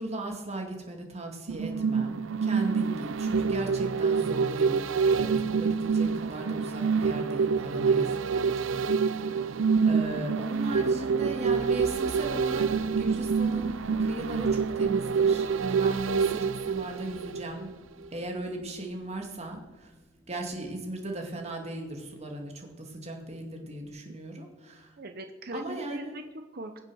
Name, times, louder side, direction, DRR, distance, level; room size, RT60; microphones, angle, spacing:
voice 1, 0.0-9.5 9.8-17.7 18.1-19.9 20.3-24.9 25.5-26.2, right 1 dB, 35° right, 2 dB, 2.3 m, -37 dB
sound 1, 1.5-17.7 18.1-18.2, right 5 dB, 85° right, 0.6 m, -27 dB
sound 2, 10.9-22.0, equal, 10° right, 1.6 m, -49 dB
voice 2, 25.0-26.8, right 2 dB, 50° right, 7 dB, 0.9 m, -40 dB
21.5 x 7.2 x 6.3 m, 1.2 s
head